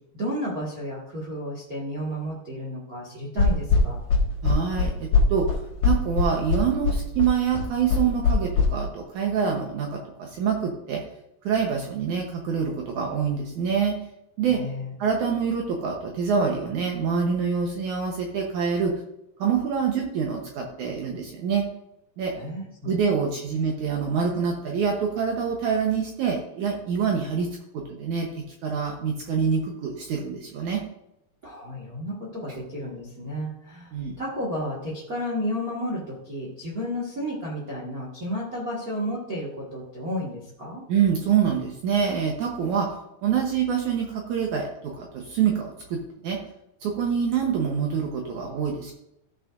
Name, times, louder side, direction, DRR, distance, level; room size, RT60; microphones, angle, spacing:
voice 1, 0.1-4.0 14.5-14.9 22.3-23.2 31.4-40.8, equal, 40° right, -5 dB, 1.3 m, -32 dB
sound 1, 3.4-8.7, left 4 dB, 55° left, 2.6 m, -21 dB
voice 2, 4.4-5.5 5.8-11.0 11.4-13.9 14.4-14.6 15.0-18.9 19.4-21.6 22.2-22.3 22.8-27.5 27.9-28.3 28.6-30.8 33.9-34.1 40.9-42.9 43.2-44.7 45.0-46.0 46.2-46.4 46.8-48.9, right 6 dB, 70° right, 1 dB, 2.1 m, -25 dB
15.0 x 6.3 x 2.5 m, 0.81 s
omnidirectional pair, 4.2 m